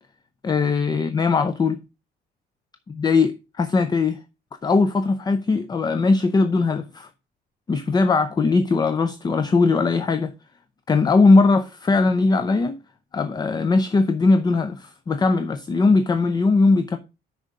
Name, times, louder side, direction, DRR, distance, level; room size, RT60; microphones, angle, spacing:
voice 1, 0.4-1.8 2.9-4.2 4.6-7.1 7.7-10.3 10.9-12.8 13.1-17.0, left 3 dB, 20° left, 0.6 m, -20 dB
6.4 x 4.9 x 6.4 m
cardioid pair, 135°, 18 cm